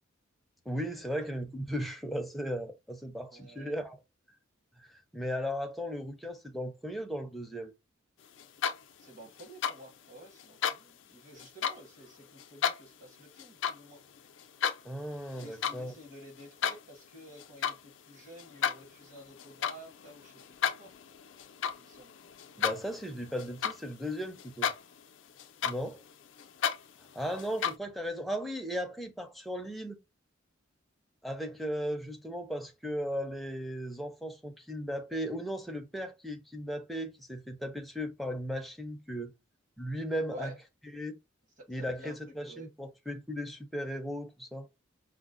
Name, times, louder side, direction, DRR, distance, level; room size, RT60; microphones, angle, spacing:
voice 1, 0.7-4.0 4.8-7.7 14.8-16.0 22.6-24.7 25.6-26.0 27.1-30.0 31.2-39.3 39.8-40.5 40.9-41.2 41.7-44.7, equal, ahead, 0.5 m, -36 dB
voice 2, 3.3-3.7 9.0-14.0 15.3-20.4 20.8-20.9 21.8-22.1 40.3-40.6 41.6-42.7, right 1 dB, 40° right, 1.1 m, -51 dB
sound 1, 8.4-9.0 9.4-9.8 10.4-10.8 11.4-11.8 12.4-12.8 13.4-13.8 14.2-14.8 15.3-15.8 16.1-16.8 17.4-17.8 18.4-24.1 24.4-25.0 25.4-27.7, left 8 dB, 65° left, 0.4 m, -33 dB
4.9 x 2.0 x 2.4 m
head